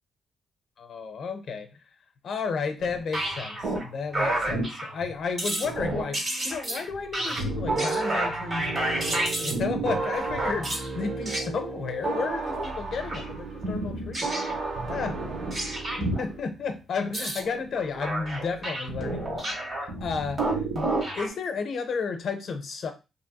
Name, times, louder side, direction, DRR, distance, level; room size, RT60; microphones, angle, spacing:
voice 1, 0.8-1.7 2.2-15.2 15.6-22.9, left 5 dB, 65° left, 6 dB, 0.6 m, -33 dB
Simpler Has Gone Crazy, 2.8-3.9 4.1-5.1 5.4-10.9 11.3-11.5 12.5-12.7 13.0-13.2 13.6-16.2 17.0-21.3, right 1 dB, 35° right, 1.3 m, -30 dB
sound 1, 7.7-16.4, right 3 dB, 55° right, 0.5 m, -33 dB
3.0 x 2.7 x 2.2 m, 0.27 s
cardioid pair, 95°, 0 cm